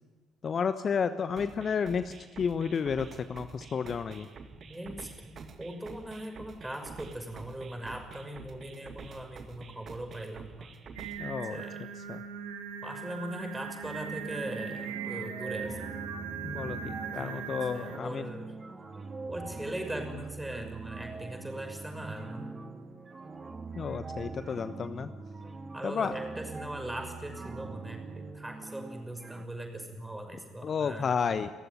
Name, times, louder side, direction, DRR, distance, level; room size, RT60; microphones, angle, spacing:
voice 1, 0.4-4.3 11.2-11.6 12.1-12.2 16.4-18.3 23.7-25.1 25.8-26.1 30.6-31.5, left 6 dB, 40° left, 11 dB, 1.0 m, -31 dB
sound 1, 1.4-11.4, right 4 dB, 40° right, 2.1 m, -48 dB
voice 2, 4.7-10.7 11.5-11.8 12.8-15.9 17.1-18.5 19.3-22.5 25.7-31.1, right 1 dB, 10° right, 5 dB, 6.0 m, -40 dB
Singing, 11.0-18.0, right 7 dB, 70° right, 1.7 m, -39 dB
sound 2, 13.8-29.4, right 3 dB, 25° right, 2.5 m, -42 dB
30.0 x 15.0 x 10.0 m, 1.2 s
figure-of-eight pair, 50°, 0 cm